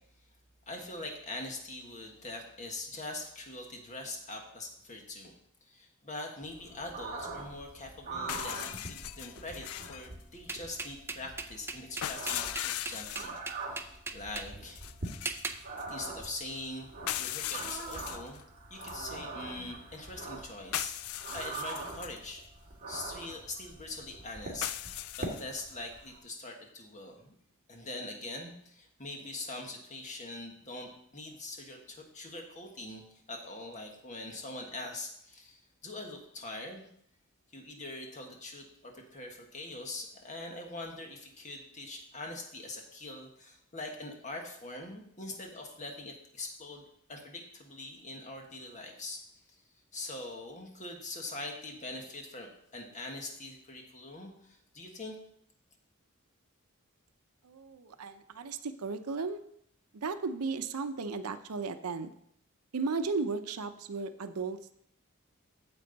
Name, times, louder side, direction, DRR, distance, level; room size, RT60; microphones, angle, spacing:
voice 1, 0.7-5.4 5.7-13.3 13.7-14.8 15.9-16.9 17.2-18.4 18.7-20.9 21.3-22.4 22.9-24.7 25.2-27.3 27.7-36.9 37.5-49.2 49.9-55.2, left 2 dB, 35° left, 2 dB, 1.5 m, -43 dB
sound 1, 6.4-26.2, right 3 dB, 40° right, 1.9 m, -43 dB
sound 2, 8.3-10.1 12.0-13.4 14.7-15.9 17.1-18.4 18.8-18.9 20.7-22.2 24.6-25.7, left 12 dB, 70° left, 0.4 m, -38 dB
sound 3, 10.5-14.5 15.3-15.6, right 3 dB, 10° right, 0.5 m, -38 dB
voice 2, 57.4-59.4 59.9-62.1 62.7-64.7, right 4 dB, 90° right, 10 dB, 0.6 m, -35 dB
8.8 x 7.7 x 4.0 m, 0.71 s
head